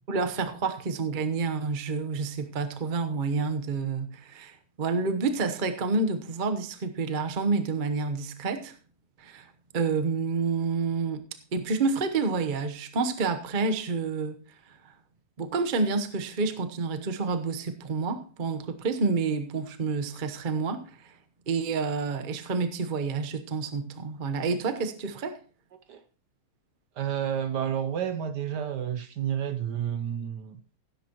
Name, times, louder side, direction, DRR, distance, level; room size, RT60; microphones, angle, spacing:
voice 1, 0.1-8.7 9.2-11.3 11.5-14.4 14.7-14.8 15.4-21.1 21.5-25.4, right 4 dB, 35° right, 0.8 m, -29 dB
voice 2, 27.0-30.6, right 9 dB, 65° right, 1.2 m, -30 dB
17.0 x 10.0 x 3.0 m
omnidirectional pair, 2.3 m